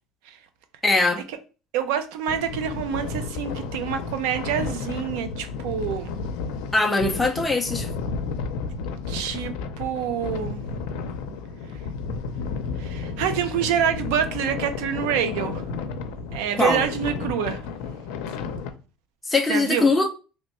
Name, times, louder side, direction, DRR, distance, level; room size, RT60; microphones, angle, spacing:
voice 1, 0.8-1.2 6.7-7.9 16.6-16.8 19.3-20.1, left 3 dB, 10° left, 0.4 m, -21 dB
voice 2, 1.7-6.2 9.1-10.6 12.8-15.6 16.3-17.6 19.5-19.9, right 9 dB, 85° right, 0.5 m, -27 dB
sound 1, 2.3-18.7, left 4 dB, 80° left, 0.5 m, -32 dB
3.0 x 2.1 x 4.2 m
cardioid pair, 125°, 0 cm